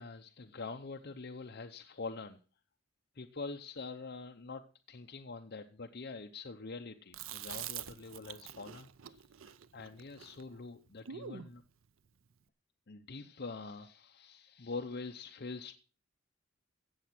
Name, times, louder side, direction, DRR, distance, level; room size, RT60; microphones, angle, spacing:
voice 1, 0.0-2.4 3.1-11.6 12.9-15.7, left 3 dB, 50° left, 4 dB, 0.8 m, -45 dB
Chewing mastication, 7.1-11.5, right 9 dB, 70° right, 0.6 m, -46 dB
16.5 x 7.3 x 6.0 m, 0.39 s
head